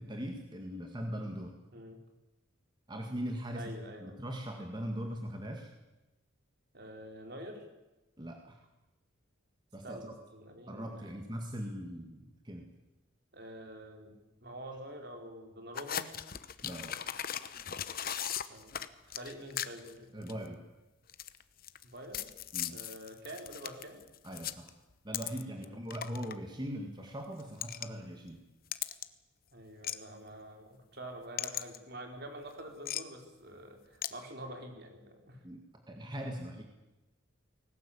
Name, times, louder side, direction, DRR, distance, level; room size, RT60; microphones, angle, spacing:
voice 1, 0.0-1.6 2.9-3.7 4.0-5.7 8.2-8.6 9.7-10.0 10.7-12.7 16.6-17.0 20.1-20.6 22.5-22.8 24.2-24.7 25.0-28.4 35.4-36.6, equal, 20° right, 3 dB, 1.9 m, -40 dB
voice 2, 3.5-4.2 6.7-7.6 9.8-11.2 13.3-14.1 14.4-16.1 18.5-18.8 19.0-20.5 21.8-22.3 22.7-24.0 25.6-25.7 26.0-26.2 29.5-35.4, right 1 dB, 55° right, 4 dB, 4.0 m, -47 dB
sound 1, 15.8-19.9 20.2-20.5 21.1-21.8 22.1-25.6 25.9-26.3 27.4-27.9 28.7-29.1 29.8-30.0 31.4-31.8 32.9-33.0 34.0-34.1, left 10 dB, 45° left, 1.0 m, -37 dB
20.0 x 18.0 x 8.6 m, 1.0 s
head